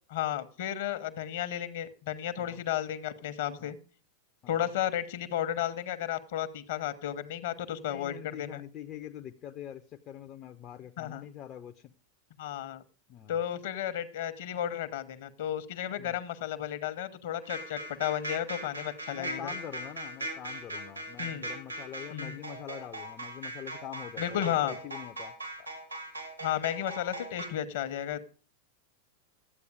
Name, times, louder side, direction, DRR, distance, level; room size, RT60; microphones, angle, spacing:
voice 1, 0.1-3.8 4.5-8.6 11.0-11.2 12.4-12.8 13.3-19.5 21.2-21.5 22.1-22.4 24.2-24.8 26.4-28.3, left 11 dB, 55° left, 12 dB, 1.1 m, -33 dB
voice 2, 7.8-11.9 13.1-13.4 16.0-16.2 19.1-25.3, left 10 dB, 35° left, 5 dB, 0.6 m, -44 dB
sound 1, 17.4-27.5, right 1 dB, 90° right, 3.3 m, -39 dB
12.5 x 8.4 x 4.9 m, 0.39 s
figure-of-eight pair, 90°, 0 cm